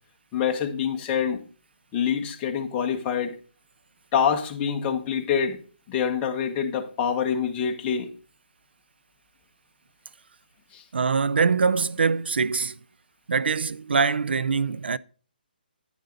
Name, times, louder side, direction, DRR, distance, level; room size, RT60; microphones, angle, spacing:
voice 1, 0.3-1.4 1.9-3.3 4.1-5.6 5.9-8.1 10.7-10.8, left 7 dB, 20° left, 1.4 m, -26 dB
voice 2, 10.9-12.8 13.3-15.0, right 5 dB, 85° right, 0.5 m, -23 dB
10.0 x 9.2 x 3.9 m
hypercardioid pair, 160°, 5 cm